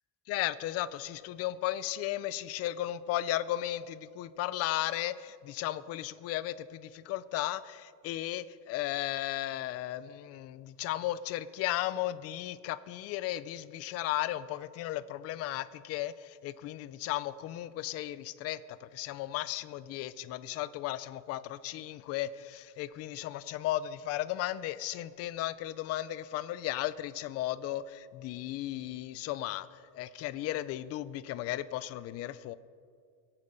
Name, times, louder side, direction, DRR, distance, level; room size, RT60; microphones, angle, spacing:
voice 1, 0.3-32.5, left 14 dB, 35° left, 15 dB, 0.4 m, -35 dB
23.0 x 8.8 x 5.3 m, 2.2 s
cardioid pair, 170°, 43 cm